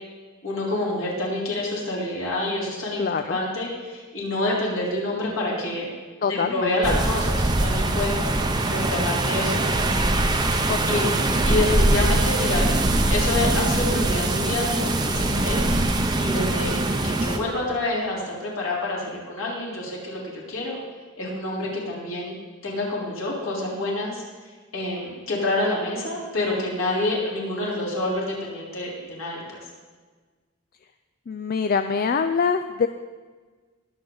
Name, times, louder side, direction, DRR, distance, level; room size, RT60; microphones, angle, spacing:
voice 1, 0.4-3.0 3.3-5.9 6.3-8.1 8.7-10.3 10.9-12.8 13.1-15.6 16.2-16.8 17.0-20.8 21.2-22.3 22.6-24.2 24.7-29.6, left 2 dB, 65° left, -4 dB, 3.7 m, -27 dB
voice 2, 3.0-3.4 6.2-7.0 10.7-10.8 31.3-32.9, left 5 dB, 40° left, 9 dB, 0.3 m, -24 dB
sound 1, 6.8-17.4, right 2 dB, 20° right, 0.7 m, -22 dB
20.5 x 7.8 x 3.9 m, 1.4 s
head